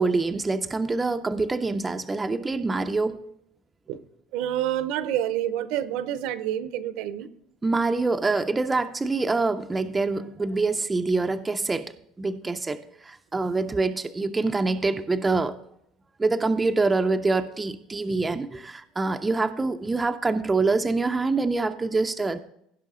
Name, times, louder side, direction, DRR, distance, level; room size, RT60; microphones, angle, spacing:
voice 1, 0.0-3.2 7.6-15.6 16.2-22.4, right 3 dB, 10° right, 0.4 m, -25 dB
voice 2, 4.3-7.3, right 11 dB, 70° right, 0.7 m, -28 dB
16.5 x 5.5 x 3.6 m
cardioid pair, 165°, 0 cm